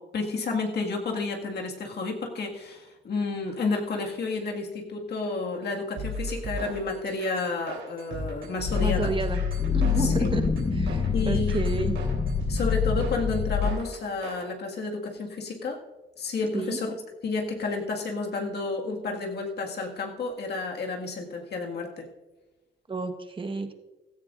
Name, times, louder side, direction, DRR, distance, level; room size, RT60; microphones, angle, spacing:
voice 1, 0.0-9.1 10.0-10.3 11.1-11.9 12.5-15.8 16.2-16.9 17.2-22.1, left 3 dB, 55° left, 1 dB, 2.0 m, -31 dB
sound 1, 6.0-14.5, right 1 dB, 75° right, 3.6 m, -37 dB
sound 2, 8.7-13.7, left 6 dB, 30° left, 1.0 m, -26 dB
voice 2, 8.8-9.4 9.7-12.0 16.5-16.8 22.9-23.7, right 3 dB, 25° right, 7 dB, 1.3 m, -31 dB
16.0 x 14.0 x 2.6 m, 1.1 s
cardioid pair, 90°, 20 cm